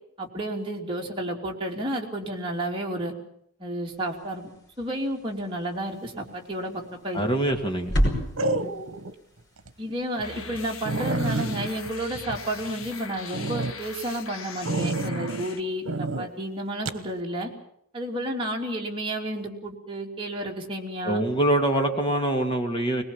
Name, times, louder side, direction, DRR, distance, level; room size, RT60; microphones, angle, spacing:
voice 1, 0.2-3.1 3.6-4.5 4.8-7.3 8.6-8.7 9.8-17.5 17.9-21.2, right 1 dB, 25° right, -1 dB, 3.2 m, -31 dB
sound 1, 3.8-12.8, equal, 55° left, 5.9 m, -34 dB
sound 2, 6.8-7.2 8.4-9.1 9.6-9.7 10.2-10.3 10.5-10.6 10.9-12.9 13.3-13.7 14.7-15.5 15.9-16.3 16.9-17.0, right 2 dB, 75° right, 1.2 m, -29 dB
voice 2, 7.1-7.9 21.0-23.0, right 1 dB, 25° left, 3 dB, 2.4 m, -24 dB
sound 3, 10.2-15.6, left 5 dB, 85° left, 1.5 m, -41 dB
21.5 x 21.0 x 7.3 m, 0.70 s
head